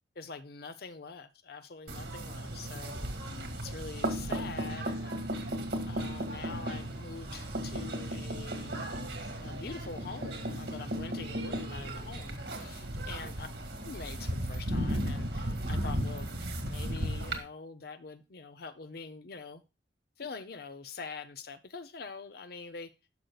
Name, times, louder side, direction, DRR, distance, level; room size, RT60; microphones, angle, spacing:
voice 1, 0.2-3.0 3.6-5.1 5.9-13.5 13.8-19.6 20.2-22.9, left 4 dB, 60° left, 0.6 m, -45 dB
sound 1, 1.9-17.4, right 1 dB, 70° right, 1.8 m, -35 dB
12.0 x 6.6 x 2.3 m
head